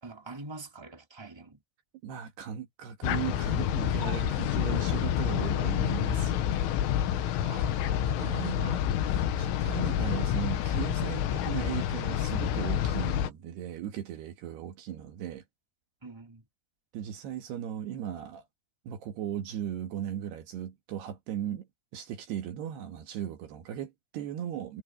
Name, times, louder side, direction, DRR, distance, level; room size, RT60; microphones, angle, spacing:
voice 1, 0.0-1.6 7.4-8.3 8.6-8.8 16.0-16.4, right 3 dB, 5° right, 3.1 m, -45 dB
voice 2, 2.0-6.4 8.0-15.4 16.9-18.4 18.9-21.7 21.9-24.8, right 10 dB, 65° right, 3.3 m, -37 dB
sound 1, 3.0-13.3, left 10 dB, 80° left, 4.0 m, -28 dB
omnidirectional pair, 5.7 m